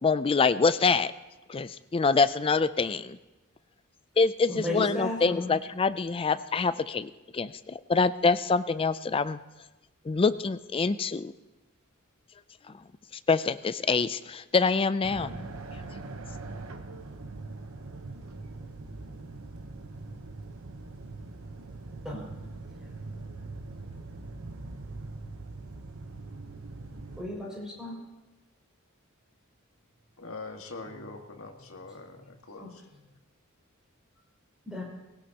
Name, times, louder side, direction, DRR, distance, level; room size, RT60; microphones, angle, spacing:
voice 1, 0.0-1.1 1.5-3.2 4.2-9.4 10.1-11.3 12.7-12.8 13.3-15.5, left 4 dB, 25° left, 14 dB, 0.4 m, -25 dB
voice 2, 4.5-5.6 22.0-22.3 27.2-28.0 32.6-32.7 34.6-34.8, left 1 dB, 5° right, -4 dB, 6.0 m, -34 dB
sound 1, 15.0-27.2, right 3 dB, 80° right, 1.0 m, -42 dB
voice 3, 30.2-32.8, left 3 dB, 75° left, 3 dB, 1.7 m, -43 dB
19.5 x 18.0 x 2.9 m, 1.1 s
head